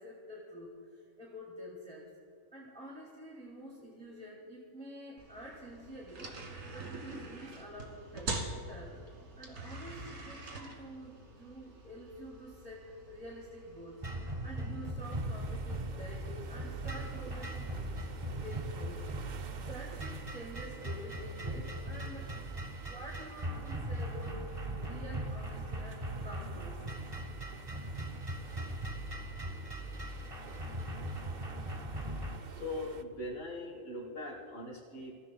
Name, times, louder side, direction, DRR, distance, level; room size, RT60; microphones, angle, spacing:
voice 1, 0.0-2.1 2.5-9.0 9.4-22.3 22.8-26.8, equal, 5° left, -4 dB, 2.3 m, -48 dB
sound 1, 5.2-20.2, right 2 dB, 90° right, 2.3 m, -46 dB
sound 2, 14.0-32.4, right 1 dB, 25° right, 1.2 m, -39 dB
sound 3, 15.0-33.0, right 6 dB, 50° right, 0.5 m, -53 dB
voice 2, 31.4-35.1, left 2 dB, 50° left, -3 dB, 1.7 m, -42 dB
27.5 x 15.0 x 2.3 m, 2.3 s
omnidirectional pair, 1.4 m